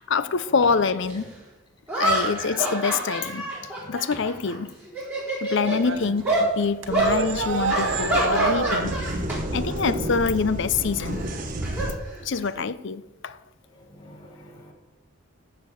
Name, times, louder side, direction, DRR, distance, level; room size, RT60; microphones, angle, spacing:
voice 1, 0.1-1.3 2.0-3.4 3.9-4.7 5.4-9.0 9.5-11.2 12.2-13.4, left 5 dB, 55° left, 0.5 m, -25 dB
sound 1, 1.1-1.2 1.9-4.5 4.9-5.8 6.2-6.5 6.9-7.2 7.7-9.4 9.7-10.0 11.2-12.6, right 1 dB, 10° right, 4.1 m, -27 dB
sound 2, 5.6-9.2, right 4 dB, 60° right, 1.0 m, -28 dB
sound 3, 6.9-11.9, right 1 dB, 35° right, 1.2 m, -31 dB
voice 2, 8.1-8.4 9.4-9.8 14.0-14.7, left 2 dB, 20° left, 1.7 m, -44 dB
13.5 x 5.1 x 7.8 m
head